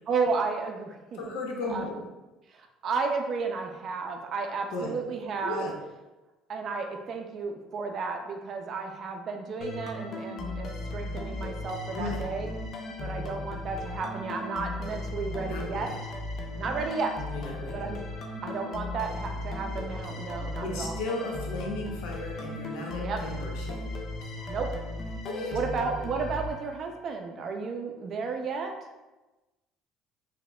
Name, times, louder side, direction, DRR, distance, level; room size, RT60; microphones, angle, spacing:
voice 1, 0.1-1.2 1.7-1.8 2.5-5.7 6.5-12.5 13.0-15.9 16.6-17.1 17.7-18.0 18.4-20.9 23.0-23.2 24.5-24.7 25.5-28.7, right 4 dB, 50° right, 3 dB, 0.4 m, -32 dB
voice 2, 1.2-2.1 4.7-4.9 5.4-5.7 11.9-12.2 15.4-16.0 17.3-17.9 20.6-23.8 25.2-25.6, left 2 dB, 85° left, 0 dB, 0.7 m, -35 dB
sound 1, 9.6-27.1, left 2 dB, 45° left, 0.4 m, -36 dB
4.0 x 2.8 x 2.2 m, 1.1 s
cardioid pair, 110°, 0 cm